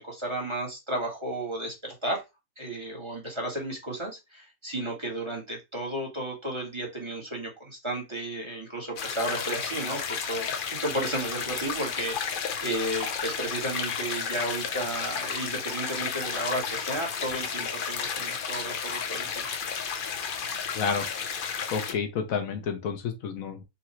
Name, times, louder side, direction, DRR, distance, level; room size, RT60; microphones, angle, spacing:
voice 1, 0.0-2.2 2.6-19.5, right 1 dB, 20° right, 1.4 m, -33 dB
sound 1, 9.0-21.9, left 6 dB, 55° left, 0.6 m, -32 dB
voice 2, 20.7-21.1 21.7-23.6, left 6 dB, 75° left, 1.2 m, -30 dB
4.0 x 2.5 x 4.3 m
omnidirectional pair, 1.5 m